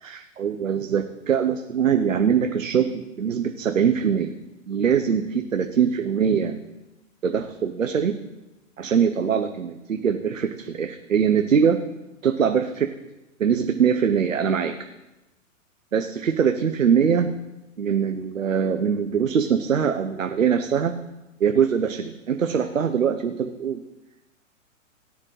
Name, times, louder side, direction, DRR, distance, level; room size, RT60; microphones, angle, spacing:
voice 1, 0.0-4.3 4.7-6.6 7.2-8.1 8.8-11.8 12.2-12.9 13.4-14.8 15.9-17.3 17.8-20.9 21.4-23.8, right 7 dB, 75° right, 7 dB, 1.0 m, -22 dB
17.5 x 9.7 x 3.2 m, 0.98 s
figure-of-eight pair, 110°, 39 cm